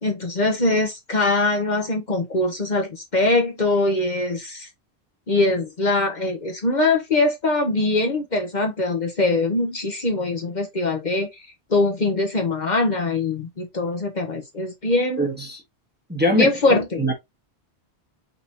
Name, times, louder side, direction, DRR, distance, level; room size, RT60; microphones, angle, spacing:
voice 1, 0.0-4.7 5.3-11.3 11.7-15.4 16.3-16.9, left 2 dB, 45° left, 1.0 m, -22 dB
voice 2, 15.2-15.6 16.1-17.1, equal, 10° right, 1.0 m, -23 dB
5.3 x 2.8 x 2.8 m
omnidirectional pair, 1.1 m